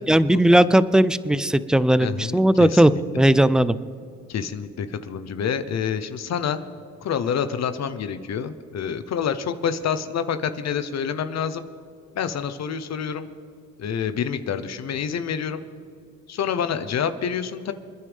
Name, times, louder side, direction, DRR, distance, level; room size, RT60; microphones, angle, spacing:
voice 1, 0.1-3.8, right 1 dB, ahead, 16 dB, 0.5 m, -17 dB
voice 2, 2.0-3.0 4.3-6.6 7.0-11.6 12.1-13.3 13.8-15.6 16.3-17.7, left 7 dB, 60° left, 11 dB, 1.0 m, -27 dB
27.5 x 10.0 x 3.6 m, 2.4 s
cardioid pair, 90°, 30 cm